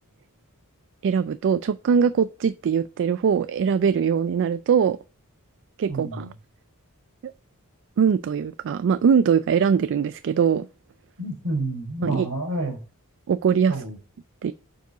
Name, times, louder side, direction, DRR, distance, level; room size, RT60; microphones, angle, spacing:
voice 1, 1.0-5.0 5.8-6.3 7.2-7.3 8.0-10.7 12.0-12.3 13.3-13.8 14.4-14.5, right 7 dB, 55° right, 0.3 m, -21 dB
voice 2, 5.9-6.3 11.2-12.8 13.7-14.0, right 2 dB, 75° right, 3.9 m, -29 dB
6.9 x 4.7 x 3.9 m
head